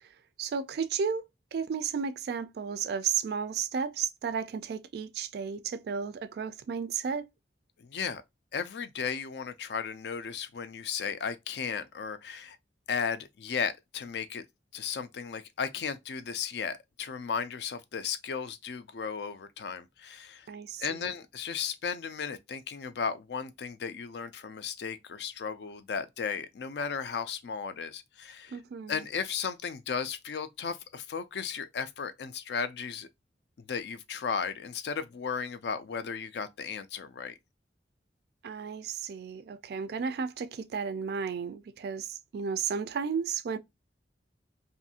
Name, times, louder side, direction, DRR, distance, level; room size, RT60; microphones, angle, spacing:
voice 1, 0.4-1.2 1.5-7.3 20.5-21.0 28.5-29.0 38.4-43.6, right 6 dB, 60° right, 0.3 m, -33 dB
voice 2, 7.8-8.2 8.5-12.6 12.9-14.4 14.7-20.5 20.8-28.6 28.9-33.1 33.6-37.3, left 6 dB, 65° left, 0.4 m, -35 dB
2.6 x 2.4 x 2.7 m
head